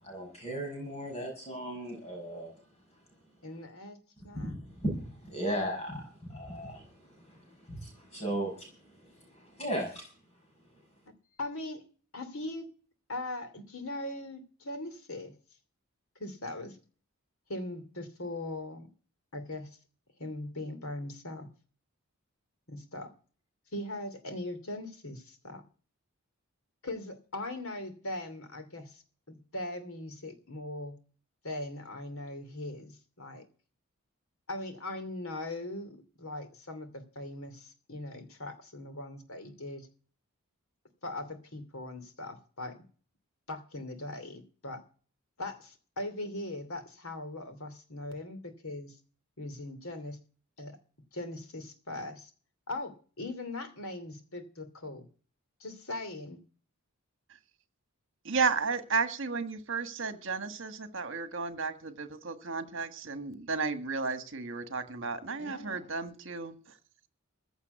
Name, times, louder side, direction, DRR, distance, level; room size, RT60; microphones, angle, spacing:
voice 1, 0.0-2.5 4.3-10.1, right 1 dB, 30° left, 6.0 m, -37 dB
voice 2, 3.4-4.0 4.2-4.5 11.4-11.9 12.1-12.7 13.1-15.3 16.1-16.8 17.5-18.9 19.3-19.8 20.2-21.5 22.7-23.1 23.7-25.6 26.8-29.0 29.3-31.0 31.4-33.4 34.5-39.9 41.0-42.8 43.5-44.8 45.4-49.0 49.4-50.2 50.6-50.8 51.1-52.3 52.7-55.1 55.6-56.4 65.4-65.9, left 2 dB, 70° left, 2.8 m, -40 dB
voice 3, 58.2-66.5, right 4 dB, 55° right, 1.6 m, -33 dB
15.5 x 7.1 x 8.1 m
head